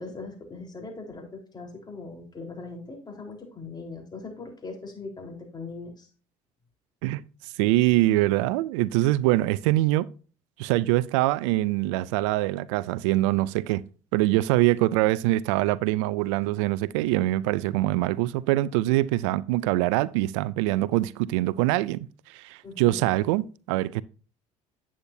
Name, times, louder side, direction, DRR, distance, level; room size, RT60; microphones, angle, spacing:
voice 1, 0.0-6.1 22.6-23.1, left 3 dB, 30° left, 4.0 m, -40 dB
voice 2, 7.6-10.1 10.6-13.8 14.1-24.0, right 17 dB, 90° right, 0.4 m, -24 dB
9.9 x 8.5 x 2.7 m
supercardioid pair, 70°, 15 cm